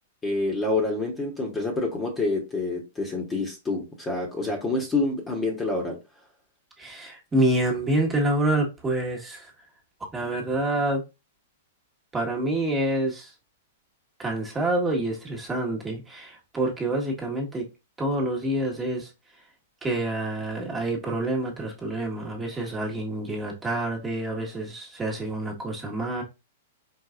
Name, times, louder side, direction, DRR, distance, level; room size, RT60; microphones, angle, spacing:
voice 1, 0.2-6.0, left 2 dB, 15° left, 1.3 m, -27 dB
voice 2, 6.8-9.5 10.1-11.0 12.1-13.3 14.2-17.7 18.0-19.1 19.8-26.2, right 1 dB, 15° right, 1.6 m, -27 dB
4.8 x 3.9 x 2.5 m
hypercardioid pair, 130°, 0 cm